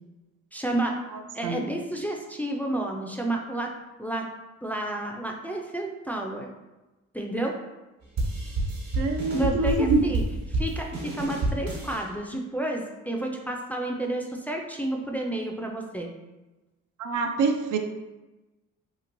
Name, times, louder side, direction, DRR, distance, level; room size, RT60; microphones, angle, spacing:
voice 1, 0.5-0.9 1.3-3.7 4.0-4.2 4.6-6.5 7.1-7.5 9.3-10.2 10.5-16.1, right 1 dB, 5° left, 0 dB, 0.3 m, -30 dB
sound 1, 8.2-12.0, right 2 dB, 55° right, 1.3 m, -29 dB
voice 2, 8.9-10.0 17.0-17.8, right 3 dB, 80° right, 5 dB, 0.5 m, -25 dB
3.0 x 2.8 x 2.6 m, 1.1 s
cardioid pair, 90°, 30 cm